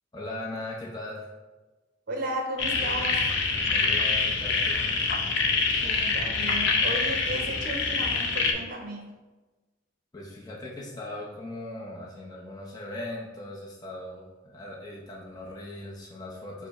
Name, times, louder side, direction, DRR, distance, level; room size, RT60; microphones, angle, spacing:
voice 1, 0.1-1.4 3.6-4.9 10.1-16.7, left 1 dB, 20° left, -4 dB, 0.6 m, -39 dB
voice 2, 2.1-3.2 5.7-9.2, right 1 dB, 50° right, 2 dB, 0.8 m, -34 dB
sound 1, 2.6-8.5, left 4 dB, 70° left, 0.6 m, -25 dB
5.1 x 2.1 x 4.7 m, 1.2 s
head